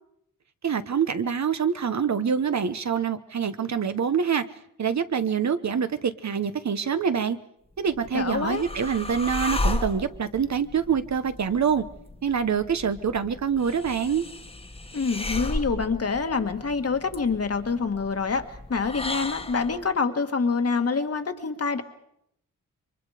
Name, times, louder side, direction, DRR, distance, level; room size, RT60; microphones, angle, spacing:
voice 1, 0.6-4.4 4.8-7.4 7.8-11.9 12.2-14.2, right 7 dB, 55° right, 11 dB, 1.1 m, -25 dB
sound 1, 7.8-19.9, left 2 dB, 15° left, 1.5 m, -34 dB
voice 2, 8.1-8.6 14.9-21.8, left 4 dB, 45° left, 7 dB, 1.7 m, -26 dB
28.0 x 24.0 x 5.0 m, 0.76 s
wide cardioid pair, 150°, 33 cm